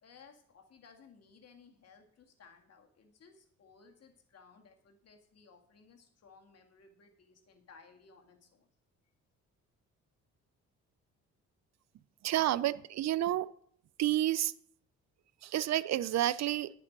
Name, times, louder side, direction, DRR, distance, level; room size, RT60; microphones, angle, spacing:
voice 1, 0.0-8.7, left 5 dB, 55° left, 4 dB, 2.0 m, -59 dB
voice 2, 12.2-13.5 14.0-14.5 15.4-16.7, right 13 dB, 60° right, 18 dB, 0.5 m, -30 dB
11.0 x 8.3 x 5.3 m, 0.63 s
cardioid pair, 90°, 30 cm